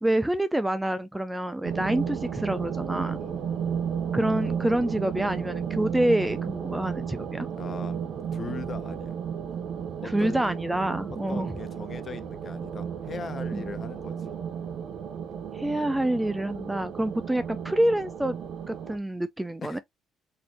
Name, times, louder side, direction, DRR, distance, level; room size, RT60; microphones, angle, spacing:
voice 1, 0.0-3.2 4.1-7.5 10.0-11.5 13.5-13.7 15.5-18.4 18.7-19.8, right 1 dB, 5° right, 0.4 m, -27 dB
sound 1, 1.6-19.0, right 7 dB, 55° right, 0.8 m, -33 dB
voice 2, 3.2-3.7 7.5-8.0 8.3-9.2 10.0-10.4 11.1-14.3 19.6-19.8, left 5 dB, 35° left, 0.7 m, -40 dB
4.2 x 2.7 x 2.9 m
cardioid pair, 135°, 0 cm